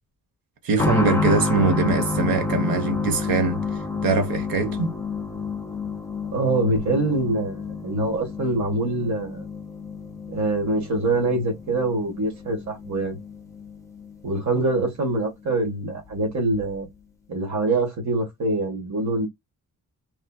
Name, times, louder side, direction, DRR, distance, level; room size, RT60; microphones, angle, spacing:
voice 1, 0.6-3.6 4.0-4.9, right 3 dB, 80° right, 1.1 m, -22 dB
sound 1, 0.8-15.2 15.5-15.6 16.5-16.6, left 3 dB, 10° left, 0.6 m, -30 dB
voice 2, 6.3-9.5 10.3-13.2 14.2-16.9 17.3-19.3, right 2 dB, 55° right, 1.5 m, -24 dB
3.1 x 2.7 x 2.3 m
wide cardioid pair, 120°, 34 cm